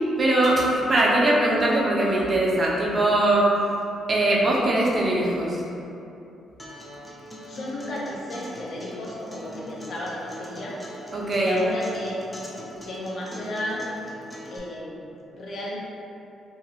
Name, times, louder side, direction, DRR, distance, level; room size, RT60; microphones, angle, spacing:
voice 1, 0.2-3.5 4.1-5.6 11.1-11.6, right 1 dB, 35° right, -4 dB, 0.5 m, -21 dB
Acoustic guitar, 6.6-14.6, left 1 dB, 15° left, 0.5 m, -41 dB
voice 2, 7.2-10.7 11.4-12.2 12.8-13.8 14.5-15.1 15.3-15.8, left 1 dB, 55° left, -5 dB, 0.6 m, -33 dB
2.7 x 2.5 x 2.8 m, 2.8 s
cardioid pair, 90°, 0 cm